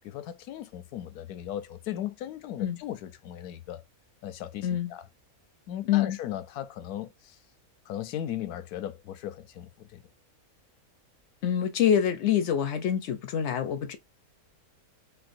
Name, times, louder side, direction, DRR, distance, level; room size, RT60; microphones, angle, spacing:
voice 1, 0.0-3.8 4.2-5.1 5.7-7.4 7.9-10.0, left 11 dB, 85° left, 1.1 m, -37 dB
voice 2, 5.8-6.2 11.4-14.0, left 9 dB, 65° left, 0.7 m, -26 dB
4.4 x 2.2 x 2.5 m
omnidirectional pair, 1.6 m